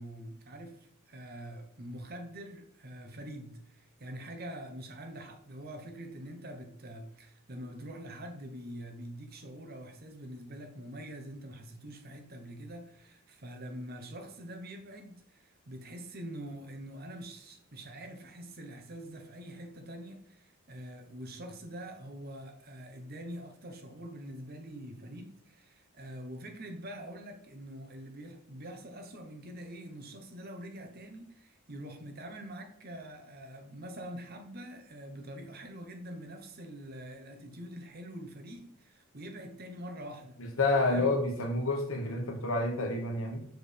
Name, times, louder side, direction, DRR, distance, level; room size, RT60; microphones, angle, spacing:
voice 1, 0.0-40.4 40.8-41.1, right 1 dB, 45° right, 0.9 m, -45 dB
voice 2, 40.6-43.4, left 2 dB, 70° left, 1.2 m, -29 dB
6.5 x 4.6 x 3.4 m
head